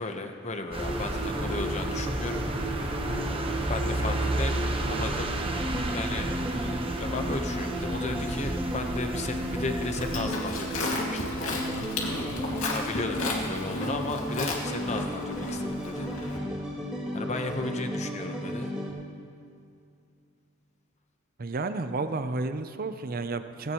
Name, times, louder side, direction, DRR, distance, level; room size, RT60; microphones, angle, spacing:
voice 1, 0.0-2.4 3.7-4.6 4.9-5.3 5.9-6.3 7.0-11.9 12.7-16.1 17.1-18.7, left 2 dB, 35° left, 5 dB, 1.0 m, -35 dB
sound 1, 0.7-10.2, right 1 dB, 25° right, 1.0 m, -32 dB
sound 2, 0.8-18.9, right 1 dB, 5° right, 2.6 m, -34 dB
Livestock farm animals working animals, 9.9-16.4, left 2 dB, 80° left, 2.2 m, -34 dB
voice 2, 12.3-12.6 21.4-23.7, right 3 dB, 45° right, 10 dB, 0.6 m, -32 dB
17.5 x 17.0 x 3.1 m, 2.4 s
head